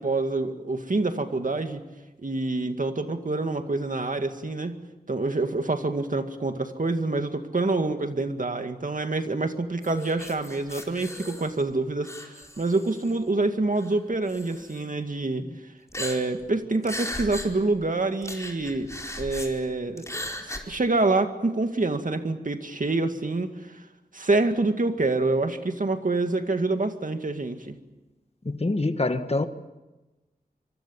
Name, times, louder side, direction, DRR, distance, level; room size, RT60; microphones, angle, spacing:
voice 1, 0.0-1.8 2.2-4.8 5.1-15.4 16.0-18.9 19.2-20.1 20.4-23.8 24.1-27.8, right 2 dB, 55° right, 7 dB, 2.1 m, -26 dB
Woman's harmonics - Crying, 9.8-11.7 12.0-13.2 13.8-13.9 14.3-14.8 15.9-16.5 16.8-17.5 17.8-17.9 18.2-19.5 20.0-20.6, left 1 dB, 20° left, 4.6 m, -37 dB
voice 2, 28.4-29.5, left 2 dB, 40° left, 9 dB, 1.5 m, -25 dB
25.0 x 23.5 x 7.2 m, 1.1 s
wide cardioid pair, 50°, 16 cm